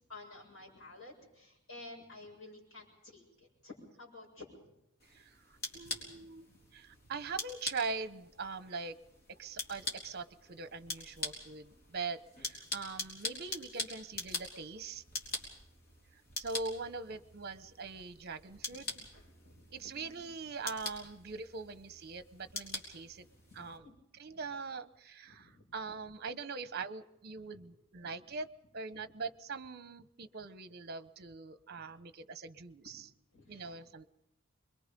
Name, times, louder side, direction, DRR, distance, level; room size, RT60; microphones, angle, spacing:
voice 1, 0.1-4.7 5.7-6.6 6.9-7.0 18.5-20.2 23.5-23.9 24.3-24.4 25.3-25.6 27.4-27.6 28.0-28.2 33.3-33.8, left 2 dB, 70° left, -1 dB, 7.3 m, -53 dB
sound 1, 5.0-23.8, left 2 dB, 50° left, 4.3 m, -44 dB
voice 2, 5.1-9.0 9.4-15.0 16.4-19.0 19.7-23.2 23.5-23.8 24.1-28.5 28.7-33.1 33.5-34.1, right 4 dB, 50° right, 12 dB, 0.9 m, -42 dB
25.5 x 22.5 x 5.3 m, 0.82 s
head